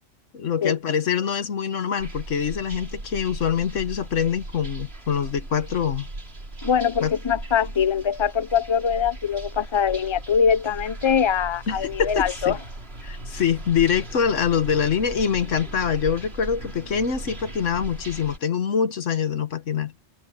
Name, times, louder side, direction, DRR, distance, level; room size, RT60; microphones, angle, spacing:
voice 1, 0.3-6.1 7.0-7.1 11.7-12.6 13.0-19.9, left 7 dB, 85° left, 1.6 m, -24 dB
sound 1, 2.0-18.4, right 2 dB, 55° right, 4.0 m, -37 dB
voice 2, 6.6-12.6, left 7 dB, 30° left, 0.7 m, -23 dB
omnidirectional pair, 1.2 m